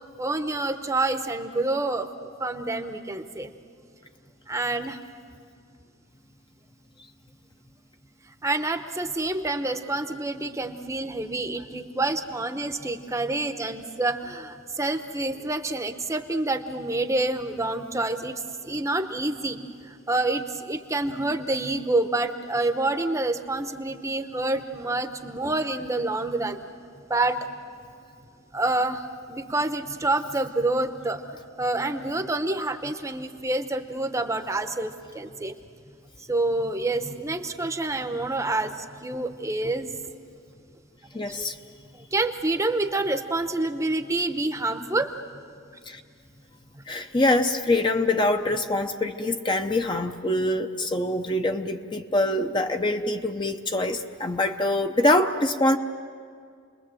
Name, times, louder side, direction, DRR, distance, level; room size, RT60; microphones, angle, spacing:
voice 1, 0.2-3.5 4.5-5.0 8.4-26.6 27.1-27.5 28.5-35.6 36.2-40.0 41.1-41.5 41.9-45.1 46.7-46.8, right 2 dB, 15° right, 7 dB, 0.9 m, -28 dB
voice 2, 41.1-41.6 45.9-46.0 46.9-55.8, left 1 dB, 25° left, 5 dB, 0.8 m, -24 dB
29.0 x 21.5 x 7.7 m, 2.3 s
head